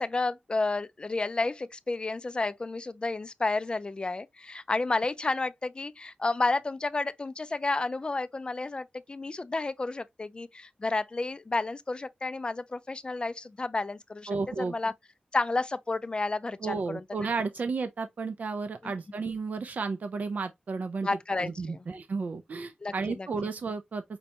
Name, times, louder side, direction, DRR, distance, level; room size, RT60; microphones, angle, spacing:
voice 1, 0.0-14.9 15.3-17.0 21.0-21.8 22.8-23.3, left 3 dB, 35° left, 0.3 m, -31 dB
voice 2, 14.3-14.7 16.6-21.1 21.4-24.2, right 4 dB, 60° right, 0.3 m, -33 dB
5.2 x 2.2 x 2.8 m
wide cardioid pair, 80°, 3 cm